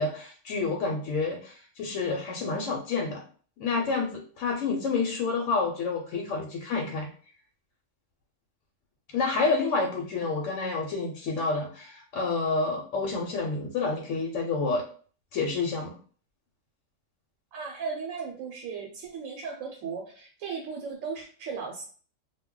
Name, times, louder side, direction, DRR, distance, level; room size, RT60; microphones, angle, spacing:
voice 1, 0.0-3.2 3.6-7.1 9.1-14.8 15.3-16.0, left 4 dB, 75° left, -1 dB, 0.9 m, -29 dB
voice 2, 17.5-21.8, right 5 dB, 85° right, 0 dB, 1.0 m, -36 dB
2.2 x 2.1 x 3.6 m, 0.43 s
omnidirectional pair, 1.3 m